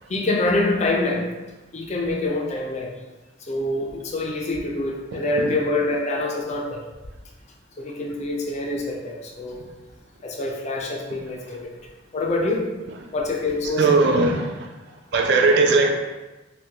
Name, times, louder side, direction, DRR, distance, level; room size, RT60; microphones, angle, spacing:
voice 1, 0.1-1.3 1.7-2.9 3.5-6.8 7.8-9.6 10.2-11.7 12.1-12.6 13.1-14.0, left 2 dB, 35° left, 0 dB, 0.4 m, -25 dB
voice 2, 13.8-14.5 15.1-15.9, right 3 dB, 60° right, 3 dB, 0.4 m, -17 dB
3.6 x 2.2 x 2.8 m, 1.1 s
head